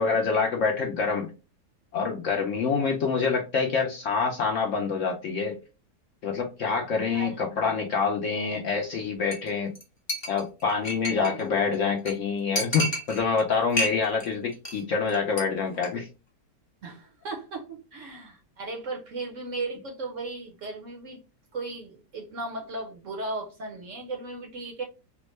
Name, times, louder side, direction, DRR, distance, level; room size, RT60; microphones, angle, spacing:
voice 1, 0.0-1.3 1.9-5.6 6.2-9.7 10.3-16.1, left 5 dB, 65° left, 1 dB, 0.7 m, -26 dB
Chink clink, 9.3-9.5 9.7-9.8 10.1-11.4 11.7-11.8 12.1-12.2 12.6-13.4 13.7-14.3 14.5-14.8 15.1-15.4 15.7-15.9, equal, 25° left, 0.7 m, -30 dB
voice 2, 11.0-11.5 16.8-21.2 21.5-24.8, right 3 dB, 60° right, 3 dB, 0.8 m, -36 dB
3.5 x 2.1 x 3.0 m, 0.30 s
omnidirectional pair, 1.8 m